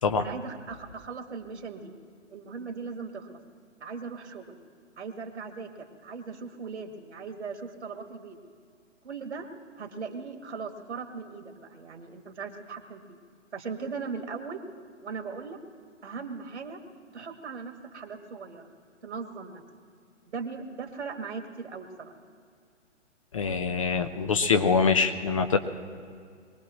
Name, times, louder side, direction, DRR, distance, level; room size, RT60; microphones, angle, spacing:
voice 1, 0.2-1.9 2.3-3.4 3.8-4.6 5.0-8.4 9.0-9.5 9.8-13.2 13.5-14.6 15.0-15.6 16.0-16.8 17.1-18.7 19.0-19.6 20.2-22.1, right 5 dB, 60° right, 6 dB, 1.8 m, -39 dB
voice 2, 23.3-25.6, left 5 dB, 25° left, 8 dB, 0.5 m, -24 dB
23.0 x 19.0 x 3.1 m, 2.2 s
figure-of-eight pair, 130°, 37 cm